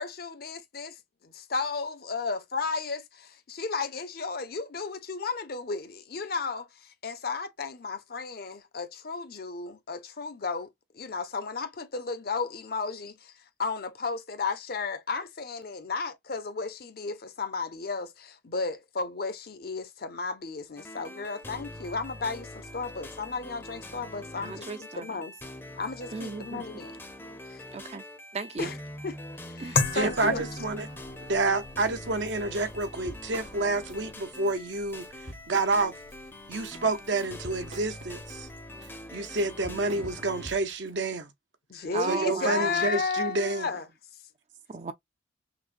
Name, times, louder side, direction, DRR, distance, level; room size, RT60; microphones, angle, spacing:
voice 1, 0.0-10.7 10.9-13.3 13.6-24.7 25.0-25.4 25.8-26.9 27.5-27.6 28.6-28.8 29.0-29.1 29.4-30.5 41.7-43.9, left 4 dB, 50° left, 0.7 m, -34 dB
sound 1, 20.8-40.5, left 1 dB, 10° left, 0.6 m, -44 dB
voice 2, 24.4-25.2 26.1-26.7 27.7-28.0 28.3-28.7 29.6-29.8 31.8-31.9 41.9-42.9 44.7-44.9, right 4 dB, 35° right, 0.4 m, -36 dB
sound 2, 29.7-38.6, left 4 dB, 75° left, 1.1 m, -38 dB
voice 3, 29.9-30.9 31.3-35.9 36.5-38.5 39.1-41.3 42.1-43.7, right 3 dB, 65° right, 0.7 m, -29 dB
Drum kit / Drum, 32.3-32.4 32.7-34.0 34.3-34.5 34.9-36.2 36.5-40.9, right 1 dB, 90° right, 1.8 m, -46 dB
5.9 x 2.2 x 2.5 m
head